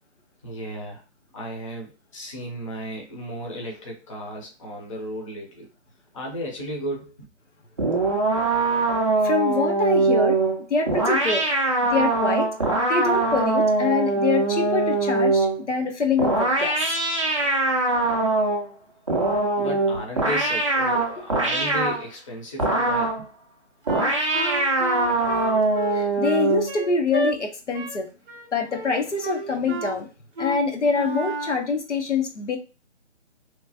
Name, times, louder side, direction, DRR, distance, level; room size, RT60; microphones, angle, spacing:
voice 1, 0.4-1.0 1.3-5.7 6.1-7.1 19.5-23.2, equal, 25° left, 0.7 m, -34 dB
sound 1, 7.8-15.6 16.2-18.7 19.1-22.0 22.6-23.2 23.9-26.7, right 2 dB, 30° right, 0.4 m, -22 dB
voice 2, 9.2-10.4 10.7-11.4 11.9-12.5 12.9-16.8 19.6-19.8 25.9-28.1 28.5-30.1 30.4-32.6, left 4 dB, 80° left, 0.9 m, -25 dB
Wind instrument woodwind instrument, 23.9-27.3 27.7-28.0 28.3-28.9 29.2-30.0 30.4-30.6 30.9-31.6, right 1 dB, 50° right, 0.8 m, -31 dB
3.0 x 2.2 x 2.7 m
figure-of-eight pair, 150°, 35 cm